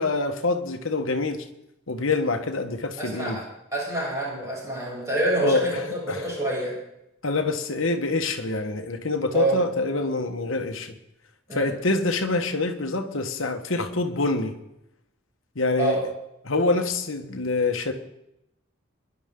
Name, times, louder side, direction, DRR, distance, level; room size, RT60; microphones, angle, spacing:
voice 1, 0.0-1.4 1.9-3.4 5.4-5.6 6.1-6.2 7.2-10.9 11.5-14.6 15.5-16.0 16.4-17.9, left 3 dB, 75° left, 5 dB, 1.4 m, -26 dB
voice 2, 3.0-3.3 3.7-6.7 9.3-9.6 11.5-11.7 15.8-16.0, right 1 dB, 15° right, -7 dB, 7.1 m, -26 dB
22.0 x 11.0 x 3.8 m, 0.84 s
head